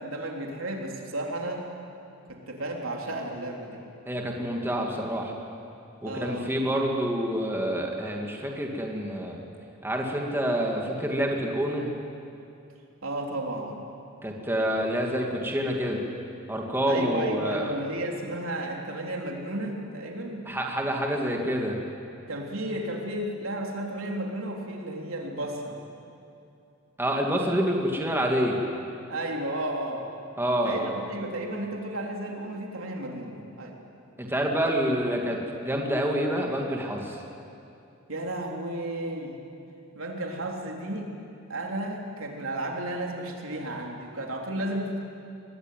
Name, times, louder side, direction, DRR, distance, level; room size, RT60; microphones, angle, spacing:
voice 1, 0.0-1.6 2.3-3.8 6.0-6.5 13.0-13.8 16.9-20.4 22.3-25.8 29.1-30.1 30.6-33.7 38.1-39.3 40.0-41.1 41.5-45.0, right 1 dB, 80° right, 1 dB, 3.6 m, -33 dB
voice 2, 4.1-5.3 6.0-9.4 9.8-11.9 14.2-16.0 16.5-17.7 20.5-21.8 27.0-28.6 30.4-30.9 34.2-37.2, equal, 10° right, 0 dB, 2.4 m, -27 dB
24.5 x 20.5 x 9.4 m, 2.7 s
head